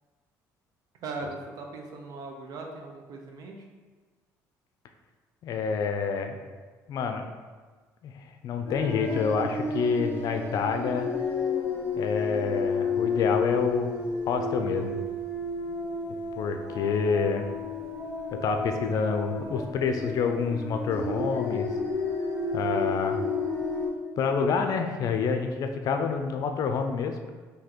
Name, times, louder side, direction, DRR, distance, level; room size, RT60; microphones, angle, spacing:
voice 1, 1.0-3.7, right 3 dB, 60° right, 2 dB, 0.7 m, -39 dB
voice 2, 5.4-6.4 6.9-7.2 8.0-8.1 8.4-11.1 12.0-14.0 14.3-15.0 16.4-17.5 18.3-21.7 22.5-23.2 24.2-27.1, left 5 dB, 60° left, 6 dB, 0.5 m, -27 dB
sound 1, 8.7-23.9, left 3 dB, 30° left, 1.3 m, -31 dB
3.8 x 2.8 x 4.4 m, 1.4 s
cardioid pair, 110°, 7 cm